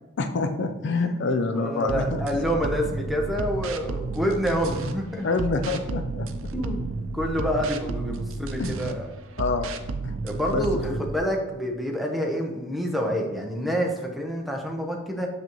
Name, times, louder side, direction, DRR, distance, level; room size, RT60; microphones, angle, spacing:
voice 1, 0.2-2.2 5.2-6.5 8.6-8.7 9.4-9.7 10.0-10.1 10.5-11.0, left 3 dB, 55° left, 7 dB, 0.5 m, -26 dB
voice 2, 1.5-5.3 6.5-9.1 10.2-15.3, equal, ahead, 0 dB, 0.8 m, -27 dB
sound 1, 1.9-4.9 5.4-8.9 9.4-11.2, right 3 dB, 75° right, 0.6 m, -32 dB
6.7 x 6.1 x 3.0 m, 1.1 s
head